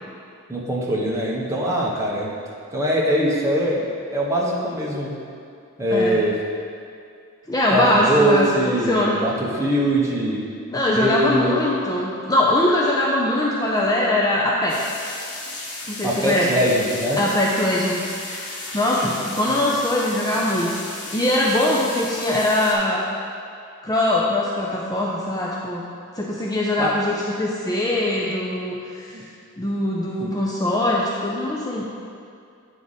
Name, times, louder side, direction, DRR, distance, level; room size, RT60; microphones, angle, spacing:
voice 1, 0.5-2.3 2.7-5.2 5.8-6.3 7.7-10.4 11.0-11.6 16.0-17.2 19.6-19.7 26.8-26.9 29.1-29.3 30.2-30.3, right 1 dB, 15° right, -4 dB, 1.0 m, -22 dB
voice 2, 5.9-6.2 7.5-9.2 10.7-14.8 15.9-16.6 17.2-20.7 21.1-23.0 23.8-25.9 26.2-29.2 29.6-31.8, left 1 dB, 15° left, -4 dB, 0.5 m, -22 dB
sound 1, 14.7-22.7, left 2 dB, 85° left, 1.5 m, -34 dB
9.2 x 4.9 x 4.1 m, 2.4 s
head